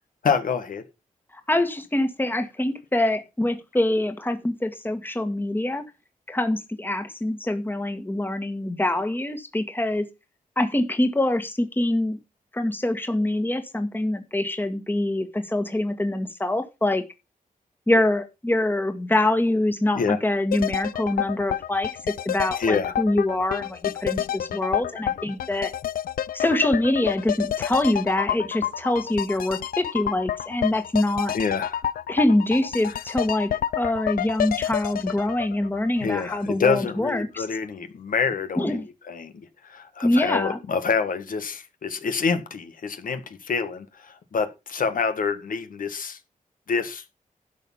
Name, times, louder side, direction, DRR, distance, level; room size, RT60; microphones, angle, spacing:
voice 1, 0.2-0.8 19.9-20.2 22.6-22.9 31.3-31.8 36.0-46.2 46.7-47.0, left 5 dB, 70° left, 1.6 m, -27 dB
voice 2, 1.5-5.8 6.3-10.0 10.5-12.2 12.5-17.0 17.9-21.9 22.2-25.7 26.3-31.3 32.1-33.5 33.7-37.4 38.6-38.9 40.0-40.6, left 1 dB, 15° left, 1.7 m, -24 dB
sound 1, 20.5-36.5 36.7-36.8, left 10 dB, 90° left, 0.5 m, -29 dB
11.5 x 6.4 x 5.6 m
cardioid pair, 90°, 15 cm